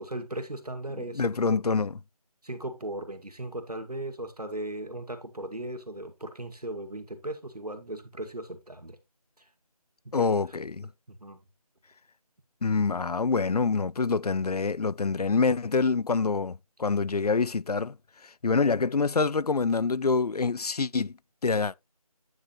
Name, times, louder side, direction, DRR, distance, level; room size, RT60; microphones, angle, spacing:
voice 1, 0.0-1.7 2.4-9.0 9.4-9.5 10.0-10.3 11.1-11.4, right 1 dB, 90° right, 2.2 m, -37 dB
voice 2, 1.1-1.9 10.1-10.9 12.6-17.9 18.4-21.1 21.4-21.7, left 4 dB, 85° left, 0.5 m, -26 dB
9.3 x 7.4 x 3.1 m
figure-of-eight pair, 180°, 19 cm